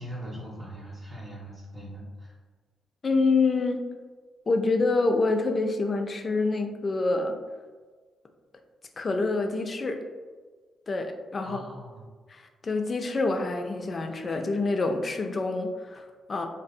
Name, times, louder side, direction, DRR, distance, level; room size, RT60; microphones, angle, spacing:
voice 1, 0.0-2.3 11.4-12.0, equal, 40° right, -7 dB, 0.6 m, -40 dB
voice 2, 3.0-3.9 4.5-7.4 9.0-10.0 10.9-11.6 12.3-16.5, left 3 dB, 45° left, 5 dB, 0.3 m, -26 dB
2.6 x 2.5 x 2.2 m, 1.4 s
hypercardioid pair, 45°, 0 cm